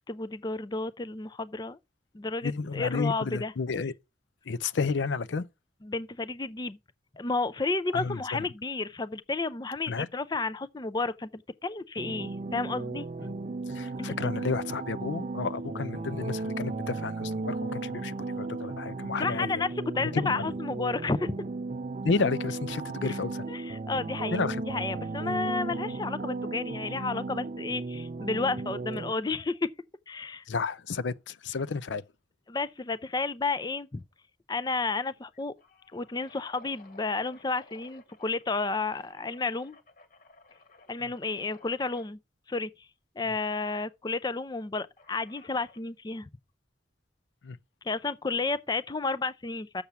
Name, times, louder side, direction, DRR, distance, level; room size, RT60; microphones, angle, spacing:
voice 1, 0.1-1.8 2.1-3.5 5.8-6.8 7.2-13.1 14.0-14.2 19.2-19.7 20.0-21.4 23.0-23.2 23.5-24.4 24.7-29.7 30.1-30.4 32.5-34.0 34.5-35.5 35.9-39.8 40.9-42.2 42.5-42.7 43.2-46.3 47.8-49.8, left 3 dB, 25° left, 0.5 m, -31 dB
voice 2, 2.4-3.9 4.5-5.5 7.9-8.4 9.9-10.1 13.2-13.3 13.7-19.6 20.0-20.5 22.0-23.4 24.3-24.6 25.3-25.4 30.5-32.0 41.0-41.1 47.4-47.6, left 4 dB, 80° left, 0.5 m, -31 dB
sound 1, 12.0-29.1, right 3 dB, 40° right, 0.4 m, -35 dB
sound 2, 34.0-34.2 34.5-34.6 35.2-38.5 38.9-42.1 43.4-43.8 45.0-45.9, left 3 dB, 50° left, 1.7 m, -57 dB
7.1 x 6.7 x 5.8 m
head